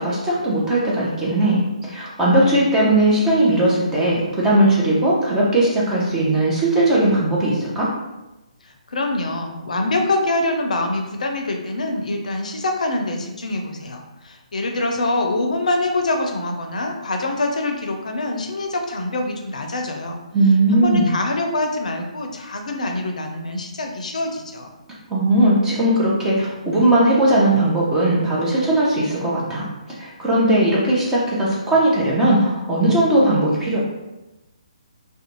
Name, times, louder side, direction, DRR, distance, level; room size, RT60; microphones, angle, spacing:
voice 1, 0.0-7.9 20.3-21.1 25.1-29.7 30.0-33.8, right 1 dB, 10° right, -6 dB, 0.5 m, -18 dB
voice 2, 8.6-20.2 20.7-24.7, left 2 dB, 70° left, 3 dB, 0.5 m, -25 dB
2.5 x 2.2 x 2.9 m, 1.0 s
figure-of-eight pair, 145°, 4 cm